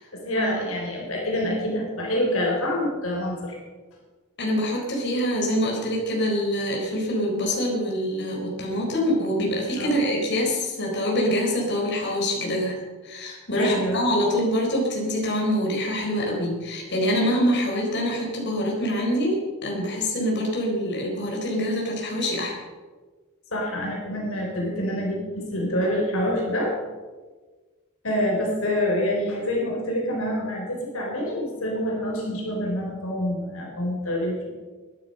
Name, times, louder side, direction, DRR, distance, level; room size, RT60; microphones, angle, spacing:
voice 1, 0.1-3.6 9.8-10.1 13.6-14.1 23.5-26.8 28.0-34.3, left 1 dB, 70° left, -1 dB, 3.9 m, -26 dB
voice 2, 4.4-12.8 13.0-19.4 19.6-22.5, equal, 50° left, -2 dB, 4.2 m, -25 dB
21.5 x 10.5 x 5.5 m, 1.4 s
head